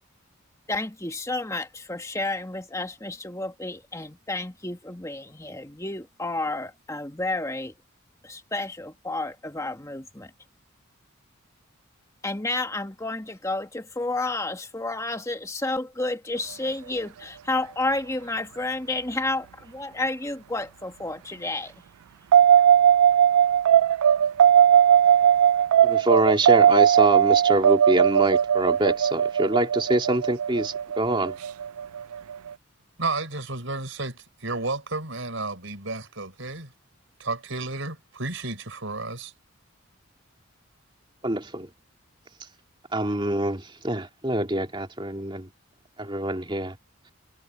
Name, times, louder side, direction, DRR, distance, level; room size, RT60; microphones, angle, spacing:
voice 1, 0.7-7.7 8.2-10.3 12.2-21.7, left 2 dB, 15° left, 1.6 m, -31 dB
sound 1, 22.3-32.5, right 9 dB, 85° right, 0.3 m, -18 dB
voice 2, 25.8-31.4 41.2-41.7 42.9-45.5 46.0-46.8, right 1 dB, 25° right, 2.9 m, -25 dB
voice 3, 33.0-36.7 37.2-39.3, right 3 dB, 60° right, 6.4 m, -32 dB
head